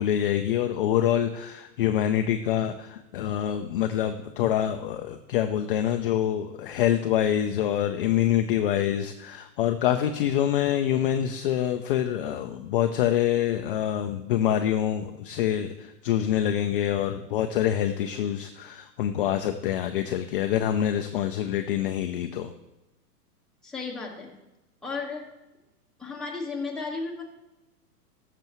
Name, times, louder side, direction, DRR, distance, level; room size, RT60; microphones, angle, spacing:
voice 1, 0.0-22.5, left 11 dB, 35° left, 7 dB, 0.4 m, -26 dB
voice 2, 23.6-24.4 24.8-25.3 26.0-27.2, left 4 dB, ahead, -3 dB, 1.3 m, -34 dB
13.0 x 6.9 x 3.0 m, 1.0 s
hypercardioid pair, 130°, 48 cm